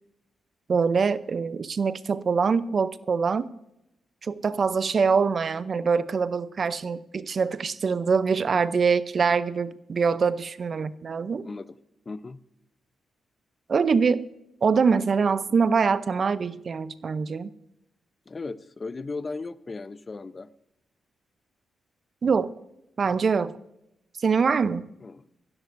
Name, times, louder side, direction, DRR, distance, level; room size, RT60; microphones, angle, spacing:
voice 1, 0.7-3.5 4.2-11.5 13.7-14.3 14.6-17.5 22.2-22.5 23.0-23.6 24.2-24.8, right 5 dB, 55° right, 16 dB, 0.6 m, -24 dB
voice 2, 11.4-11.7 12.1-12.4 18.3-20.5 25.0-25.2, left 3 dB, 40° left, 15 dB, 0.7 m, -36 dB
19.0 x 15.5 x 2.6 m, 0.85 s
supercardioid pair, 50°, 0 cm